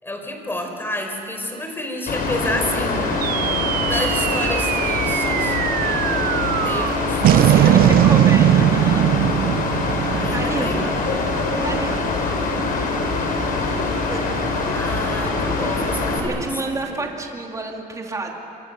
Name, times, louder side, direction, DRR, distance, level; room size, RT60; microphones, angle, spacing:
voice 1, 0.0-3.1 3.8-5.6 6.6-8.0 10.1-10.9 14.6-17.0, left 1 dB, 15° left, 4 dB, 4.6 m, -30 dB
Mechanical fan, 2.1-16.2, left 3 dB, 55° left, 4.9 m, -23 dB
sound 1, 3.2-11.8, right 13 dB, 60° right, 0.5 m, -19 dB
voice 2, 7.5-9.1 10.3-10.9 11.6-12.2 13.6-14.3 16.2-18.3, right 3 dB, 20° right, 1 dB, 2.8 m, -30 dB
26.5 x 24.5 x 6.8 m, 2.8 s
cardioid pair, 110°, 17 cm